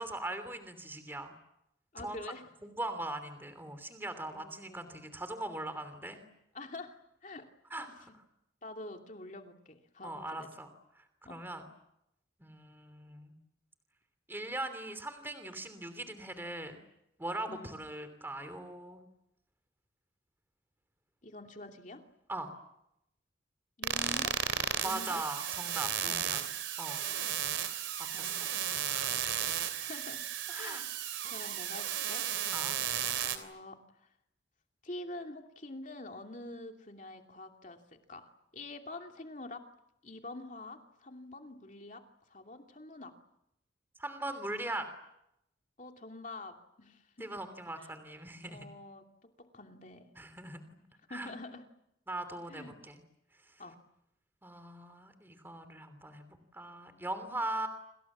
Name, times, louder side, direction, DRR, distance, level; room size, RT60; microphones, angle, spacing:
voice 1, 0.0-1.3 2.0-2.2 2.6-6.2 7.7-8.0 10.0-10.7 11.3-11.6 12.4-13.3 14.3-16.8 17.2-19.0 22.3-22.5 24.8-26.4 26.8-27.0 28.1-28.3 28.9-29.1 30.5-30.8 31.2-31.3 32.5-32.8 44.0-44.9 47.2-48.7 50.2-50.6 51.1-51.3 52.1-53.0 54.4-57.7, right 1 dB, 10° right, 9 dB, 2.9 m, -40 dB
voice 2, 1.9-2.4 4.3-5.1 6.5-7.5 7.8-8.0 8.6-10.5 11.2-11.4 17.5-17.7 21.2-22.0 23.8-24.4 24.8-25.2 26.0-26.4 27.1-27.3 28.1-28.5 29.1-29.3 29.7-30.3 30.5-30.9 31.3-32.2 33.2-33.8 34.8-39.7 40.0-43.1 45.8-47.4 47.8-47.9 48.5-50.1 51.1-51.7 52.5-52.8 53.6-53.8, left 2 dB, 40° left, 4 dB, 2.7 m, -47 dB
sound 1, 23.8-33.4, right 10 dB, 80° right, 3.1 m, -34 dB
27.5 x 27.5 x 7.4 m, 0.81 s
head